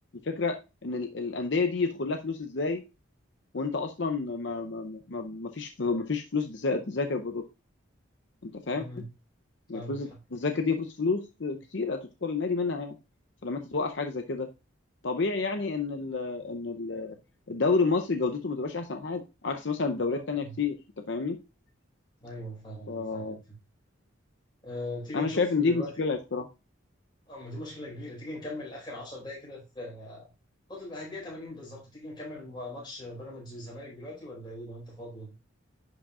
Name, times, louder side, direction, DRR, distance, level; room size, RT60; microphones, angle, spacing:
voice 1, 0.2-2.8 3.5-7.4 8.4-9.0 9.7-13.0 13.4-14.5 15.0-17.1 17.5-21.4 22.9-23.4 25.1-26.5, left 4 dB, 60° left, 6 dB, 0.7 m, -30 dB
voice 2, 8.8-9.1 9.7-10.0 17.1-17.2 20.1-20.6 22.2-23.6 24.6-26.0 27.3-30.3 30.7-35.3, left 1 dB, 20° left, -4 dB, 4.4 m, -40 dB
11.0 x 4.9 x 2.4 m, 0.27 s
head